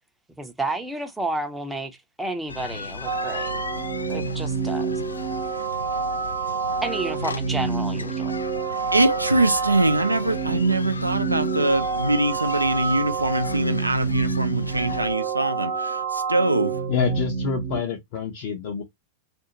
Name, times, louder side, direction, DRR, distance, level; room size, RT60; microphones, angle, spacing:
voice 1, 0.4-3.5 4.1-4.9 6.8-8.3, right 2 dB, 5° right, 0.7 m, -31 dB
sound 1, 2.5-15.2, left 5 dB, 75° left, 0.3 m, -36 dB
sound 2, 3.0-17.8, right 5 dB, 65° right, 0.8 m, -28 dB
voice 2, 8.9-16.8, right 2 dB, 85° right, 0.5 m, -23 dB
voice 3, 16.9-18.8, left 9 dB, 45° left, 0.7 m, -27 dB
2.5 x 2.3 x 2.9 m
figure-of-eight pair, 90°, 0 cm